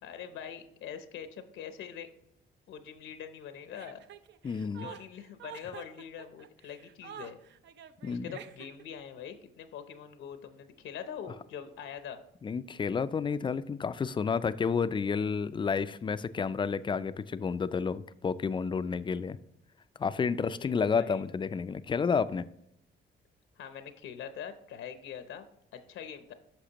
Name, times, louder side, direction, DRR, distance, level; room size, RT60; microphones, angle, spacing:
voice 1, 0.0-2.1 2.7-4.0 4.8-7.4 8.1-12.2 20.6-21.3 23.6-25.5 25.7-26.3, left 8 dB, 80° left, 9 dB, 0.8 m, -43 dB
Chuckle chortle, 3.7-9.0, right 10 dB, 65° right, 0.5 m, -48 dB
voice 2, 4.4-4.9 8.0-8.4 12.4-19.4 20.0-22.5, left 5 dB, 25° left, 14 dB, 0.3 m, -30 dB
10.0 x 6.0 x 2.9 m, 0.78 s
cardioid pair, 90°, 20 cm